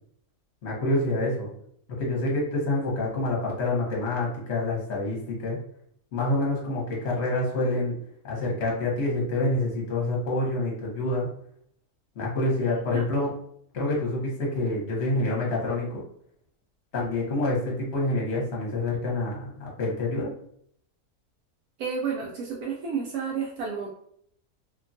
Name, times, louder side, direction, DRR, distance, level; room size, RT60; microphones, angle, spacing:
voice 1, 0.6-1.5 2.0-5.6 6.1-7.9 8.2-11.3 12.1-13.3 13.7-16.0 16.9-20.3, left 2 dB, 50° left, -3 dB, 1.1 m, -27 dB
voice 2, 21.8-23.9, right 6 dB, 80° right, -3 dB, 1.0 m, -31 dB
2.8 x 2.2 x 2.6 m, 0.67 s
omnidirectional pair, 1.6 m